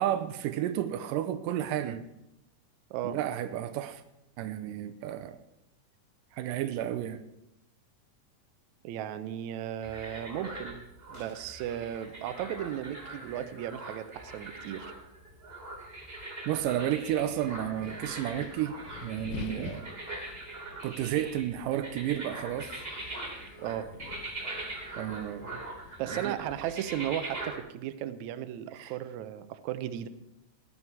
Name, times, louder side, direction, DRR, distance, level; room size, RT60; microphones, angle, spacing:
voice 1, 0.0-2.0 3.0-4.0 4.4-5.4 6.3-7.2 16.5-19.8 20.8-22.7 25.0-25.6 26.1-26.4 28.7-28.9, right 11 dB, 90° right, 10 dB, 2.3 m, -32 dB
voice 2, 8.8-10.8 11.1-14.9 19.6-19.7 23.6-23.9 26.0-30.1, right 11 dB, 75° right, 11 dB, 1.9 m, -35 dB
sound 1, 9.8-27.6, right 2 dB, 20° right, 2.9 m, -42 dB
Wind, 17.2-26.7, left 12 dB, 80° left, 1.7 m, -48 dB
16.5 x 11.5 x 4.7 m, 0.86 s
omnidirectional pair, 3.8 m